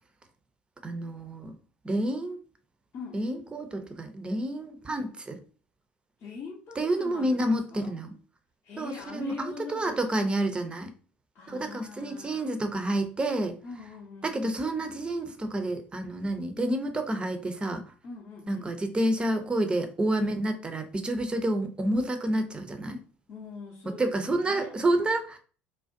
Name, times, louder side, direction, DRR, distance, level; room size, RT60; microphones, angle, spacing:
voice 1, 0.8-1.5 1.8-2.4 3.1-5.4 6.8-8.1 8.8-10.9 11.5-13.6 14.2-17.8 18.5-23.0 23.9-25.4, right 1 dB, 15° right, 0.5 m, -29 dB
voice 2, 2.9-3.2 6.2-7.9 8.6-10.2 11.3-12.5 13.6-14.4 18.0-18.7 23.3-24.7, left 4 dB, 40° left, 0.6 m, -43 dB
2.4 x 2.1 x 2.5 m
figure-of-eight pair, 65°, 6 cm